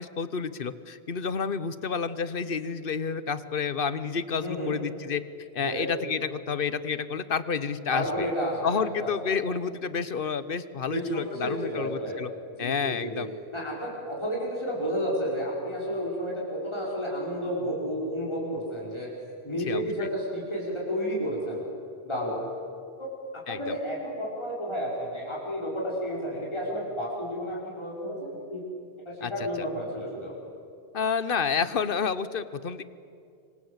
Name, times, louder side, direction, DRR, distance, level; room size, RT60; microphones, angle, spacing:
voice 1, 0.0-8.3 8.6-12.3 12.6-13.3 19.7-20.1 23.5-23.8 29.2-29.3 29.6-29.7 30.9-32.8, left 6 dB, 55° left, 14 dB, 1.2 m, -30 dB
voice 2, 4.4-4.7 5.6-5.9 7.9-9.3 10.9-12.2 12.6-13.2 13.5-19.1 19.4-21.6 22.0-22.4 23.0-28.6 29.0-30.3, equal, 25° left, -4 dB, 5.1 m, -31 dB
26.5 x 25.5 x 8.1 m, 2.4 s
omnidirectional pair, 1.1 m